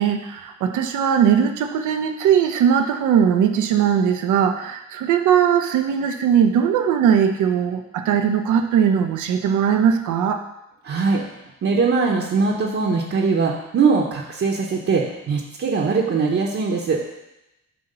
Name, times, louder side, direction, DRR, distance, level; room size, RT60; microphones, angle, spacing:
voice 1, 0.0-10.4, right 8 dB, 80° right, 6 dB, 0.8 m, -19 dB
voice 2, 10.8-11.2 11.6-17.0, right 4 dB, 50° right, -2 dB, 1.0 m, -21 dB
7.9 x 2.9 x 5.5 m, 0.92 s
cardioid pair, 90°, 30 cm